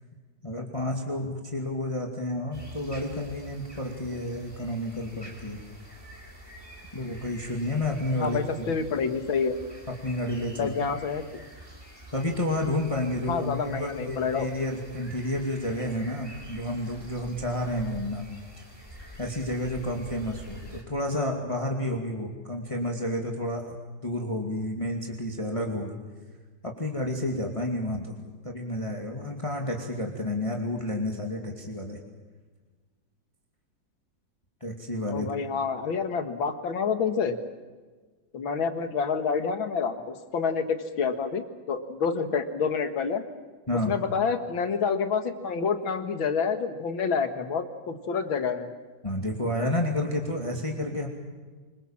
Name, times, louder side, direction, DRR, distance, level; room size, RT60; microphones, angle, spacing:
voice 1, 0.4-5.6 6.9-8.5 10.0-10.7 12.1-18.2 18.6-18.7 19.2-26.0 26.6-28.2 28.4-32.0 34.6-35.3 43.7-43.9 49.0-51.1, left 1 dB, 15° left, 1 dB, 2.5 m, -30 dB
sound 1, 2.5-20.8, right 1 dB, 10° right, 4.1 m, -47 dB
voice 2, 8.2-9.6 10.6-11.2 13.3-14.5 35.1-37.4 38.3-43.2 43.9-48.7, left 5 dB, 90° left, 8 dB, 2.5 m, -28 dB
25.5 x 23.0 x 7.4 m, 1.4 s
omnidirectional pair, 2.1 m